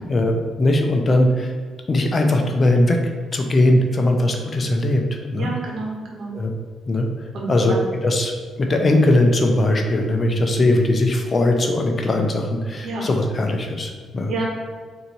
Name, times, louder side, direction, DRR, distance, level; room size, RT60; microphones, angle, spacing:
voice 1, 0.1-1.5 1.9-3.0 3.3-5.0 5.3-5.5 6.3-6.5 6.9-7.1 7.5-7.7 8.0-8.3 8.6-14.3, left 1 dB, 35° left, 3 dB, 0.6 m, -19 dB
voice 2, 5.4-6.4 7.3-7.8 12.8-13.1 14.3-14.4, right 3 dB, 65° right, -2 dB, 1.2 m, -29 dB
3.9 x 2.8 x 4.5 m, 1.5 s
cardioid pair, 90°, 0 cm